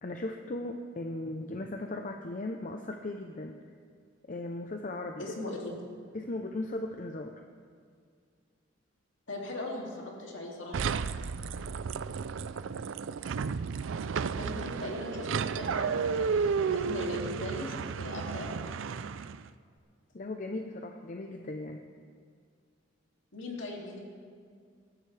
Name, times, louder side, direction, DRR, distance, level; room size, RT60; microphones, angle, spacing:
voice 1, 0.0-3.6 4.3-5.2 6.1-7.4 20.1-21.9, left 2 dB, 45° left, 4 dB, 0.7 m, -37 dB
voice 2, 5.2-5.7 9.3-10.9 14.4-18.5 23.3-24.0, left 2 dB, 80° left, -2 dB, 2.6 m, -39 dB
sound 1, 10.7-19.5, right 5 dB, 80° right, 0.4 m, -32 dB
19.0 x 14.0 x 3.3 m, 2.1 s
head